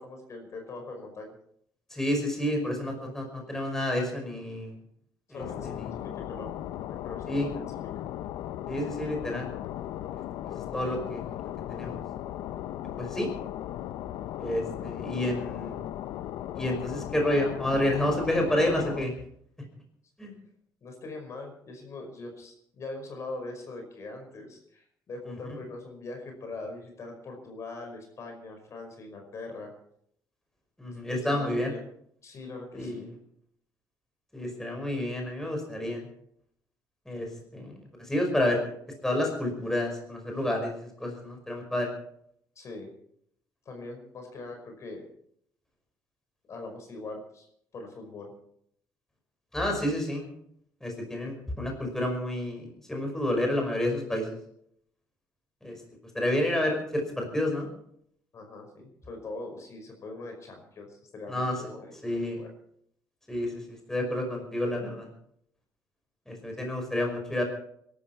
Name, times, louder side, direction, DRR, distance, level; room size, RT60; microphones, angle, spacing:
voice 1, 0.0-1.3 5.3-6.5 7.0-7.7 20.8-29.7 31.3-31.8 32.2-33.1 42.5-42.9 43.6-45.1 46.5-47.5 47.7-48.3 58.3-62.5 66.6-66.7, left 2 dB, 45° left, 4 dB, 5.3 m, -42 dB
voice 2, 1.9-4.8 5.3-5.9 7.3-7.5 8.7-9.5 10.4-12.0 13.0-13.3 14.4-15.8 16.6-19.1 20.2-20.3 30.8-31.7 32.7-33.1 34.3-36.1 37.1-38.6 39.0-41.9 49.5-50.3 50.8-54.3 55.6-55.8 56.1-57.7 61.3-61.6 62.0-62.4 63.3-65.1 66.3-67.4, left 1 dB, 5° left, 2 dB, 5.4 m, -30 dB
sound 1, 5.4-19.0, left 12 dB, 80° left, 0.8 m, -37 dB
22.0 x 13.0 x 4.6 m, 0.69 s
cardioid pair, 115°, 7 cm